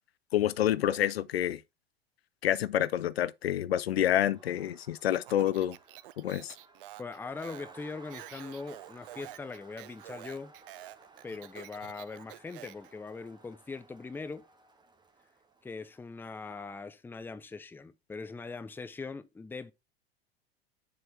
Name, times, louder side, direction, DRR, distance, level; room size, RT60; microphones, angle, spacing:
voice 1, 0.3-1.6 2.4-5.8 6.2-6.6, left 11 dB, 75° left, 0.5 m, -28 dB
Crowd, 4.0-16.6, right 3 dB, 15° right, 1.5 m, -58 dB
Speech, 5.1-12.9, right 16 dB, 60° right, 0.5 m, -49 dB
voice 2, 7.0-10.5 11.2-14.4 15.6-19.7, left 4 dB, 5° left, 0.5 m, -41 dB
6.8 x 3.9 x 4.4 m
figure-of-eight pair, 85°, 31 cm